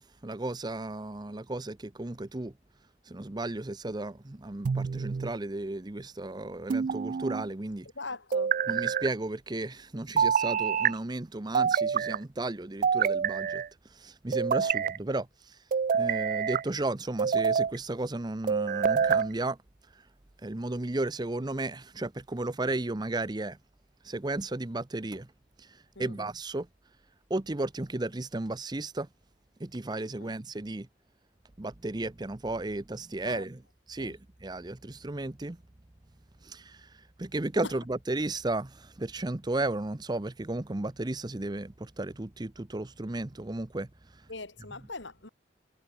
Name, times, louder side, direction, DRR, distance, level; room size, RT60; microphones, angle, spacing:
voice 1, 0.0-2.5 3.1-7.9 8.7-13.6 13.9-15.5 15.9-19.6 20.4-23.6 24.0-25.3 25.6-25.7 26.0-26.7 27.3-29.1 29.6-30.9 31.6-33.6 33.9-35.6 36.4-36.9 37.2-43.9, right 2 dB, 25° right, 0.7 m, -34 dB
sound 1, 4.7-5.3 6.7-7.5 8.3-9.1 10.2-10.9 11.5-12.2 12.8-13.7 14.3-15.0 15.7-16.6 17.2-17.8 18.5-19.3, right 7 dB, 45° right, 0.3 m, -26 dB
voice 2, 8.0-8.6 14.6-14.7 26.0-26.2 30.2-30.3 33.2-33.4 34.0-34.2 37.6-37.7 44.3-45.3, left 3 dB, 85° left, 4.1 m, -41 dB
head